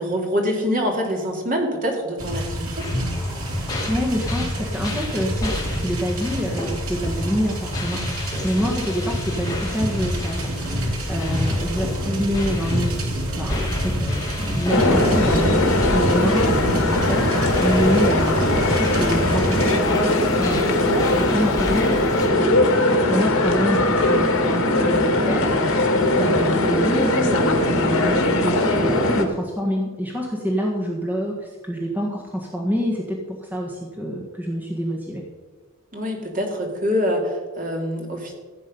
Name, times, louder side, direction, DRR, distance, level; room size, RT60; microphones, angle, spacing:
voice 1, 0.0-2.7 35.9-38.3, equal, 40° right, 1 dB, 2.5 m, -25 dB
sound 1, 2.2-19.8, equal, 80° right, 2.7 m, -27 dB
sound 2, 2.8-22.3, left 2 dB, 15° left, 2.6 m, -33 dB
voice 2, 3.5-35.2, equal, 10° right, -1 dB, 1.5 m, -27 dB
sound 3, 14.7-29.2, left 1 dB, 75° left, 1.8 m, -20 dB
15.5 x 8.7 x 5.5 m, 1.3 s
head